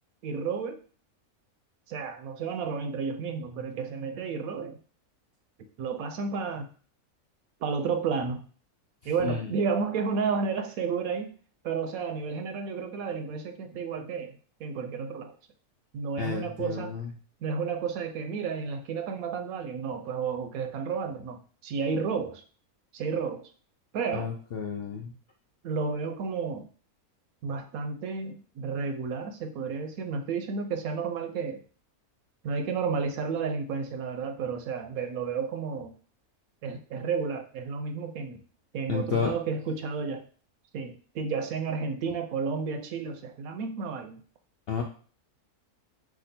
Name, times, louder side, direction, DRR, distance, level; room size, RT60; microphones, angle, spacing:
voice 1, 0.2-0.8 1.9-4.8 5.8-6.7 7.6-8.4 9.0-11.3 11.6-15.4 15.9-17.0 17.4-22.4 22.9-23.5 23.9-24.3 25.6-26.7 27.4-31.6 32.4-35.9 36.6-38.4 38.7-40.3 40.7-44.2, right 5 dB, 75° right, 7 dB, 1.0 m, -32 dB
voice 2, 16.2-17.1 24.1-25.1 38.9-39.3 44.7-44.8, left 6 dB, 65° left, 1 dB, 0.6 m, -31 dB
5.0 x 2.4 x 4.2 m, 0.41 s
omnidirectional pair, 1.6 m